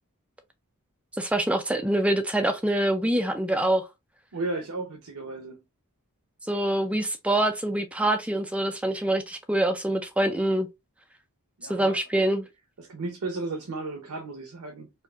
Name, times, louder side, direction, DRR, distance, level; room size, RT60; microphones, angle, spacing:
voice 1, 1.2-3.8 6.5-10.7 11.7-12.5, right 1 dB, 5° right, 0.3 m, -25 dB
voice 2, 4.3-5.6 11.6-12.0 12.8-14.9, right 2 dB, 80° right, 0.7 m, -34 dB
4.4 x 2.5 x 2.3 m
head